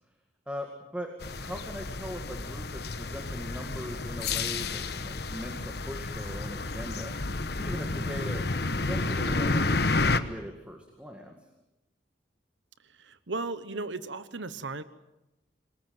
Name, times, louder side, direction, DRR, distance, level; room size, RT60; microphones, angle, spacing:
voice 1, 0.5-7.2 7.6-11.3, equal, 5° right, 3 dB, 2.1 m, -40 dB
sound 1, 1.2-10.2, left 3 dB, 60° left, 1.2 m, -30 dB
voice 2, 13.0-14.8, right 3 dB, 80° right, 13 dB, 1.1 m, -35 dB
27.5 x 20.5 x 7.9 m, 0.94 s
head